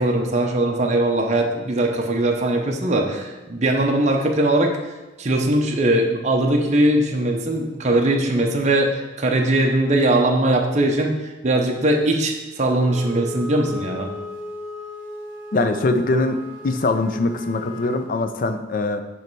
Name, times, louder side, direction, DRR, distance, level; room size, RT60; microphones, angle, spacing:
voice 1, 0.0-4.7 5.2-11.2 11.4-14.1, right 1 dB, 35° right, 1 dB, 0.7 m, -20 dB
Wind instrument woodwind instrument, 12.8-18.1, left 1 dB, 85° left, 0.9 m, -36 dB
voice 2, 15.5-19.0, left 2 dB, 45° left, 9 dB, 0.4 m, -22 dB
7.6 x 3.2 x 4.5 m, 1.1 s
head